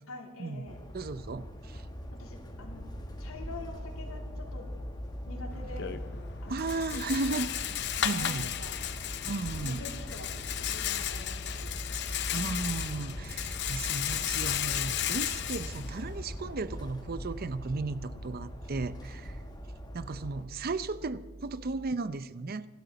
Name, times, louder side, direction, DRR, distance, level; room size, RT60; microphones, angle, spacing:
voice 1, 0.1-0.8 1.7-1.8 2.2-2.8 3.2-4.7 5.2-5.9 6.4-7.0 7.3-7.5 8.0-8.8 9.6-11.7 20.5-20.8, left 2 dB, 80° left, 1 dB, 3.3 m, -46 dB
sound 1, 0.7-20.4, equal, 20° left, 1.6 m, -42 dB
voice 2, 0.9-1.9 6.5-7.5 8.0-8.5 9.2-9.8 12.0-19.4 19.9-22.7, right 3 dB, 45° right, 15 dB, 0.6 m, -35 dB
sound 2, 2.5-21.9, right 2 dB, 20° right, 1.4 m, -49 dB
Rattle, 5.5-16.5, left 10 dB, 55° left, 0.8 m, -34 dB
27.5 x 13.0 x 4.0 m, 1.3 s
head